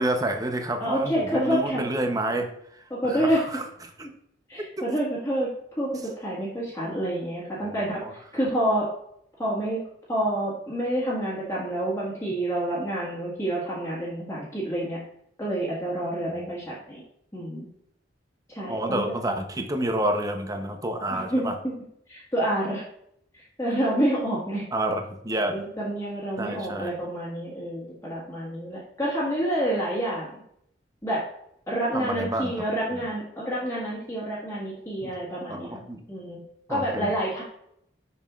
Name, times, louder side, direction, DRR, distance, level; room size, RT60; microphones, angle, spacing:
voice 1, 0.0-3.7 4.0-4.1 4.8-4.9 7.6-8.1 16.3-16.5 18.7-21.6 24.7-25.6 26.4-26.9 31.9-32.6 35.0-35.2 35.5-36.0 36.7-37.2, right 1 dB, 20° right, 5 dB, 0.7 m, -29 dB
voice 2, 0.8-1.8 2.9-3.4 4.0-4.1 4.5-5.5 5.8-8.0 8.3-8.9 9.4-9.8 10.1-15.0 15.4-17.0 17.3-17.7 18.5-19.0 21.1-21.7 22.1-22.8 23.3-24.6 25.5-30.4 31.0-31.2 31.7-35.8 36.1-36.4 36.7-37.4, right 1 dB, 15° left, -8 dB, 1.7 m, -28 dB
6.9 x 6.5 x 2.4 m, 0.72 s
head